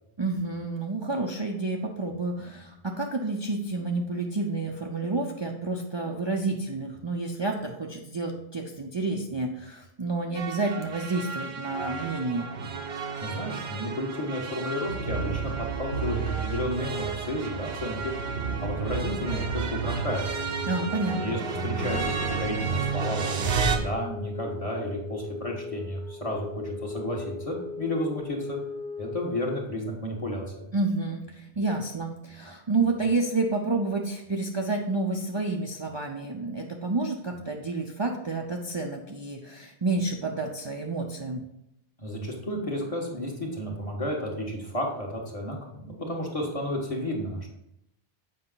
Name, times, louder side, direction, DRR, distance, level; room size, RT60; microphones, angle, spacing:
voice 1, 0.2-12.5 20.6-21.4 30.7-41.4, right 3 dB, 35° right, 1 dB, 0.5 m, -29 dB
sound 1, 10.4-23.8, right 5 dB, 75° right, 1.0 m, -31 dB
voice 2, 13.2-18.1 18.6-20.2 21.2-28.6 29.0-30.6 42.0-47.5, left 1 dB, 35° left, -1 dB, 1.6 m, -32 dB
Wind instrument woodwind instrument, 19.7-29.4, left 4 dB, 55° left, 1.3 m, -40 dB
7.8 x 5.3 x 3.9 m, 0.82 s
omnidirectional pair, 1.0 m